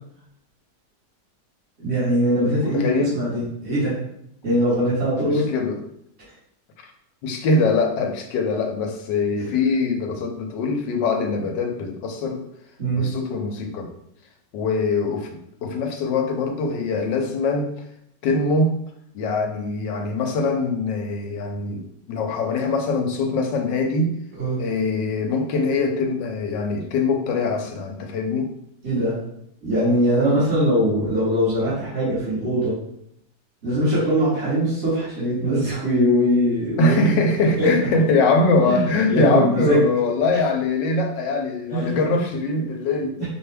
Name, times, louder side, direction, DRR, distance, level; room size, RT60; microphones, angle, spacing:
voice 1, 1.8-4.0 4.4-5.5 12.8-13.1 24.4-24.6 28.8-29.2 29.6-32.8 33.6-37.1 37.6-37.7 38.7-39.8 41.7-42.1 42.5-42.6 43.2-43.3, equal, 40° right, -11 dB, 2.2 m, -21 dB
voice 2, 2.6-3.2 5.2-5.8 7.2-12.4 12.9-13.9 14.5-17.7 18.2-18.8 19.1-24.1 24.6-28.5 36.8-43.2, left 3 dB, 90° left, 4 dB, 1.4 m, -23 dB
5.7 x 2.6 x 3.4 m, 0.74 s
omnidirectional pair, 1.9 m